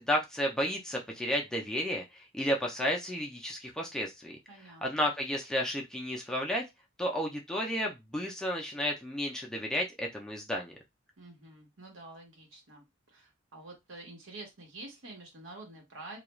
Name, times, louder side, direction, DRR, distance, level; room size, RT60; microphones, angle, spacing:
voice 1, 0.0-4.4 4.8-6.6 7.0-10.8, equal, 5° left, -1 dB, 0.4 m, -32 dB
voice 2, 4.5-5.1 11.2-16.2, right 2 dB, 75° right, 0 dB, 1.1 m, -48 dB
2.4 x 2.2 x 3.0 m, 0.20 s
head